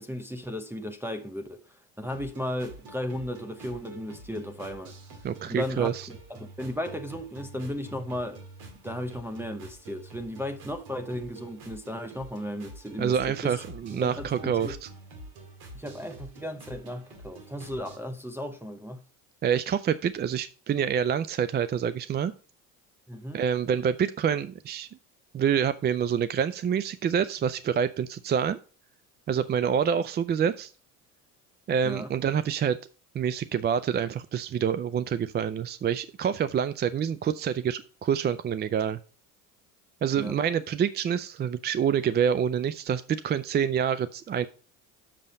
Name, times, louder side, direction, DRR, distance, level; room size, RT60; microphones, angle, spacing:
voice 1, 0.0-5.0 5.5-5.9 6.3-8.4 8.8-13.6 13.9-14.8 15.7-19.0 23.1-23.4 31.8-32.1 40.2-40.4, left 1 dB, 5° right, 0.8 m, -35 dB
sound 1, 2.0-18.0, right 2 dB, 70° right, 2.2 m, -47 dB
voice 2, 5.2-6.1 13.0-14.9 19.4-22.3 23.3-24.9 25.3-28.6 29.3-30.7 31.7-32.8 33.1-39.0 40.0-44.5, right 8 dB, 25° right, 0.4 m, -27 dB
6.8 x 5.5 x 5.1 m
hypercardioid pair, 75°, 41 cm